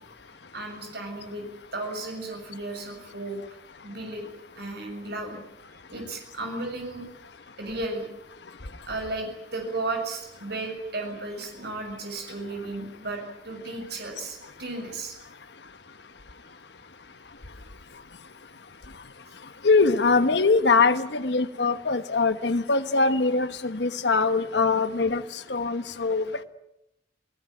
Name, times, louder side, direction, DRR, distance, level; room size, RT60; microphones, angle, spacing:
voice 1, 0.5-1.4 1.7-3.4 3.8-4.3 4.6-5.4 5.9-7.0 7.6-8.1 8.9-15.2, right 2 dB, 65° right, 3 dB, 6.9 m, -34 dB
voice 2, 19.6-25.2 25.5-26.2, left 4 dB, 65° left, 11 dB, 1.2 m, -22 dB
28.0 x 17.5 x 9.3 m, 0.87 s
head